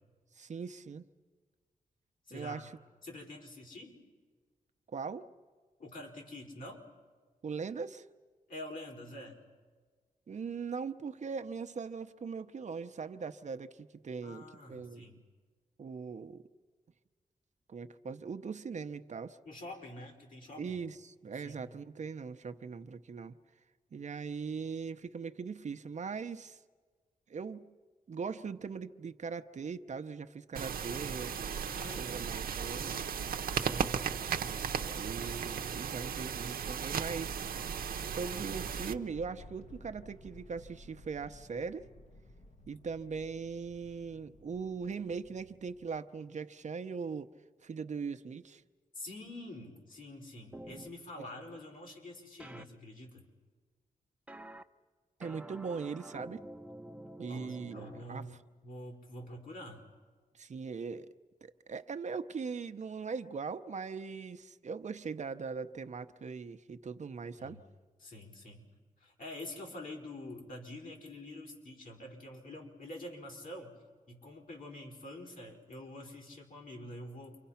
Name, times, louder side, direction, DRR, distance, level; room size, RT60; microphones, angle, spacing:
voice 1, 0.4-1.1 2.3-2.7 4.9-5.3 7.4-8.1 10.3-15.0 15.8-16.5 17.7-19.4 20.6-23.4 23.9-26.6 27.3-27.7 28.1-31.4 32.0-33.0 34.9-37.4 38.1-41.9 42.7-47.3 47.6-48.6 55.2-56.4 57.2-58.2 60.3-61.1 61.4-67.6, right 5 dB, 55° right, 9 dB, 0.8 m, -40 dB
voice 2, 2.3-2.6 3.0-4.0 5.8-6.8 8.5-9.4 14.2-15.2 19.4-20.8 21.4-21.7 31.6-32.2 33.5-34.0 48.9-53.3 57.3-58.3 58.6-59.8 67.4-67.6 68.0-68.7 69.0-73.8 74.1-77.4, left 1 dB, 70° left, 0 dB, 4.8 m, -46 dB
sound 1, 30.5-38.9, right 7 dB, 90° right, 0.8 m, -36 dB
sound 2, 38.6-46.0, left 1 dB, 50° left, 1.2 m, -54 dB
sound 3, 50.5-50.9 52.4-52.6 54.3-54.6 55.2-58.0, right 1 dB, 10° right, 0.8 m, -48 dB
29.0 x 24.5 x 5.8 m, 1.5 s
wide cardioid pair, 100°, 15 cm